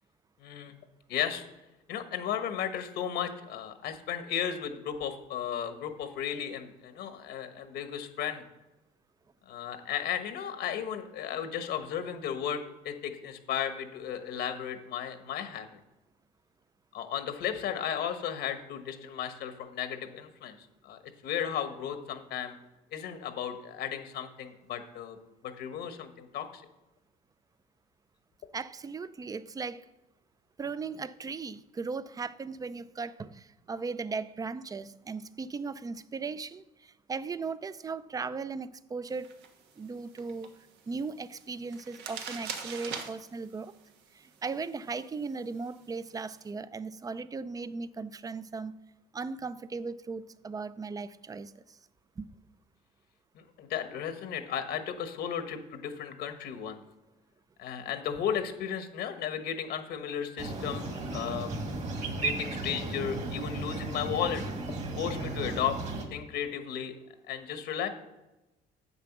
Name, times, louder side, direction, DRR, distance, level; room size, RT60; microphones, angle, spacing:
voice 1, 0.4-0.7 1.1-1.5 1.9-8.4 9.5-15.8 16.9-20.6 20.8-22.6 22.9-25.2 25.4-26.6 53.3-56.8 57.6-61.5 62.2-64.4 65.0-65.8 66.1-66.9 67.3-67.9, left 9 dB, 75° left, 8 dB, 1.2 m, -34 dB
voice 2, 28.5-29.9 30.6-39.3 39.8-40.5 40.9-43.7 44.1-48.7 49.1-51.8 52.2-52.3, right 4 dB, 20° right, 16 dB, 0.4 m, -37 dB
sound 1, 39.1-46.5, right 6 dB, 85° right, 1.3 m, -46 dB
sound 2, 60.4-66.0, right 3 dB, 45° right, 2.1 m, -35 dB
7.7 x 6.9 x 6.0 m, 1.0 s
cardioid pair, 110°, 17 cm